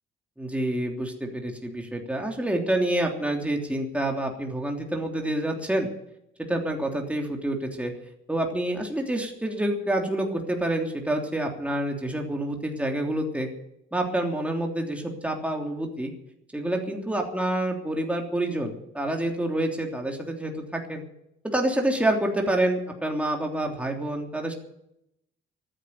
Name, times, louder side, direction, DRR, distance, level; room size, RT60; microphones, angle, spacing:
voice 1, 0.4-5.9 6.5-7.9 8.3-13.5 13.9-16.1 16.5-21.0 21.4-24.5, right 1 dB, 5° right, 1 dB, 3.2 m, -27 dB
14.0 x 10.5 x 9.5 m, 0.79 s
cardioid pair, 90°, 20 cm